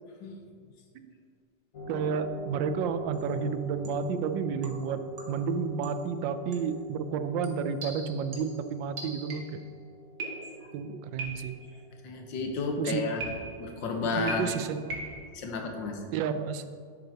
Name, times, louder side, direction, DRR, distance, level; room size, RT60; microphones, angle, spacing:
sound 1, 1.7-14.9, right 1 dB, 55° left, 1.2 m, -44 dB
voice 1, 1.9-9.6 10.7-11.5 12.8-13.0 14.0-14.9 16.1-16.6, right 6 dB, 85° right, 10 dB, 1.3 m, -31 dB
sound 2, 3.1-3.4 3.8-4.2 4.6-5.5 5.8-6.1 6.5-6.8 7.4-9.7 10.2-10.8 11.2-11.7 13.2-13.8 14.3-15.3, right 2 dB, 60° right, 1.6 m, -41 dB
voice 2, 12.0-13.3 13.6-14.5 15.4-16.0, left 4 dB, 80° left, 3 dB, 1.7 m, -31 dB
12.0 x 6.8 x 2.8 m, 2.1 s
omnidirectional pair, 2.0 m